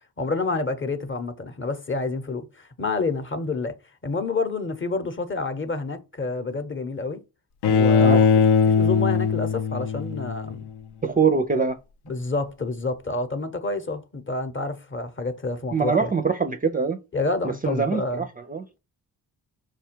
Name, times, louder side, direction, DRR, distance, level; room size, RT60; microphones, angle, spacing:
voice 1, 0.2-3.8 4.0-7.2 7.6-8.3 8.6-10.6 12.1-16.1 17.1-18.3, left 3 dB, 30° left, 0.8 m, -28 dB
Bowed string instrument, 7.6-10.7, left 6 dB, 80° left, 0.6 m, -20 dB
voice 2, 11.0-11.8 15.7-17.0 17.4-18.6, right 5 dB, 25° right, 0.4 m, -23 dB
4.9 x 2.3 x 4.4 m
cardioid pair, 75°, 39 cm